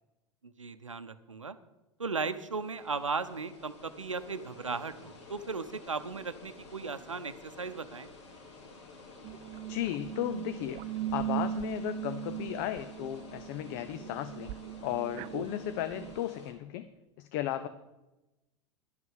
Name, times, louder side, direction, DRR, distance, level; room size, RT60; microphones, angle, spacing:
voice 1, 0.4-1.6 2.0-8.1, right 4 dB, 80° right, 12 dB, 0.8 m, -36 dB
sound 1, 2.2-16.5, left 3 dB, 60° left, 2.6 m, -52 dB
sound 2, 9.2-16.2, right 11 dB, 40° right, 0.4 m, -39 dB
voice 2, 9.7-10.8 11.1-14.5 14.8-16.9 17.2-17.7, left 12 dB, 45° left, 11 dB, 0.6 m, -35 dB
11.5 x 8.1 x 7.3 m, 1.0 s
figure-of-eight pair, 85°, 16 cm